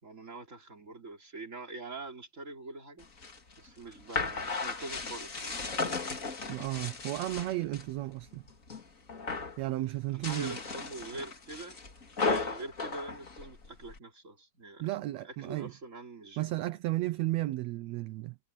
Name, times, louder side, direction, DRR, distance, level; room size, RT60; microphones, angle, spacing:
voice 1, 0.0-3.1 3.6-5.7 10.1-11.8 12.2-16.5, right 2 dB, 25° right, 3.9 m, -44 dB
sound 1, 3.0-7.9 8.3-8.8 9.1-9.6 10.1-14.0, left 4 dB, 30° left, 2.4 m, -35 dB
voice 2, 6.5-8.4 9.6-10.5 14.8-15.7 16.4-18.4, right 17 dB, 75° right, 1.8 m, -33 dB
omnidirectional pair, 3.4 m